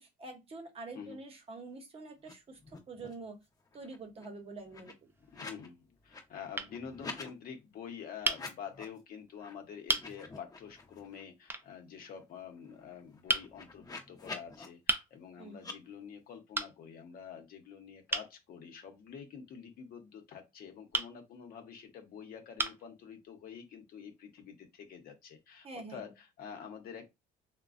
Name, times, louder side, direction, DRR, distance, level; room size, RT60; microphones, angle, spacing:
voice 1, 0.0-2.6 2.9-3.4 3.7-4.9 15.4-15.6 25.6-26.1, right 3 dB, 35° right, 0.8 m, -46 dB
sound 1, 2.2-2.3 2.6-3.3 3.6-5.7 6.0-7.3 8.2-9.0 9.4-9.5 9.9-11.2 11.6-11.7 12.0-14.7 15.6-15.8, left 3 dB, 20° left, 0.7 m, -48 dB
sound 2, 4.8-5.4 6.1-6.3 6.6-6.7 8.2-8.5 9.3-9.4 9.9-10.1 11.5-11.7 13.3-13.5 14.9-15.1 16.5-16.8 18.1-18.3 20.9-21.1 22.0-22.1 22.6-22.9, right 3 dB, 15° right, 0.3 m, -33 dB
voice 2, 5.3-27.1, left 7 dB, 60° left, 0.8 m, -47 dB
3.1 x 2.1 x 2.5 m
cardioid pair, 110°, 17 cm